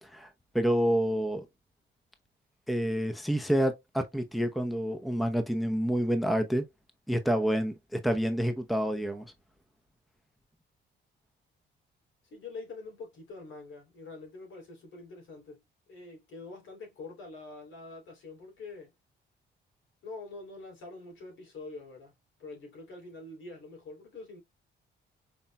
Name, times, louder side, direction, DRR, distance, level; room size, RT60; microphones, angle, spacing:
voice 1, 0.5-1.5 2.7-6.6 7.1-9.3, equal, ahead, 0.8 m, -28 dB
voice 2, 12.3-15.6 15.9-18.9 20.0-22.1 22.4-24.4, left 3 dB, 75° left, 3.2 m, -45 dB
5.5 x 4.3 x 2.2 m
cardioid pair, 90°, 20 cm